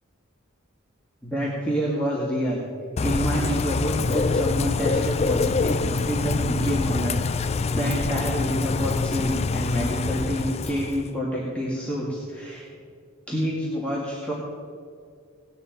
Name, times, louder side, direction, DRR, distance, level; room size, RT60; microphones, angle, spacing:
voice 1, 1.2-2.6 3.0-7.2 7.7-12.7 13.3-14.3, equal, 5° left, -6 dB, 2.3 m, -27 dB
Bird / Rain, 3.0-11.1, left 4 dB, 30° left, 0.4 m, -25 dB
18.0 x 10.5 x 5.3 m, 2.1 s
head